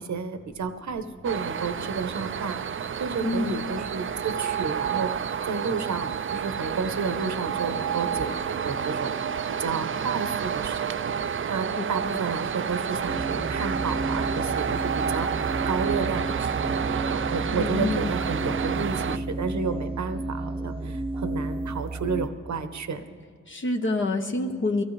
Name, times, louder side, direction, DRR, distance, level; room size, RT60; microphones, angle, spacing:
voice 1, 0.0-2.6 3.0-5.1 5.4-9.1 9.5-11.1 11.5-23.2, right 5 dB, 70° right, 9 dB, 0.9 m, -31 dB
sound 1, 1.2-19.2, right 7 dB, 45° right, 0.4 m, -29 dB
voice 2, 3.2-3.6 11.8-12.2 17.5-18.2 23.5-24.8, left 2 dB, 40° left, 2 dB, 0.9 m, -28 dB
sound 2, 13.0-22.3, right 2 dB, 20° right, 0.8 m, -32 dB
23.0 x 15.5 x 3.2 m, 2.1 s
wide cardioid pair, 90°, 30 cm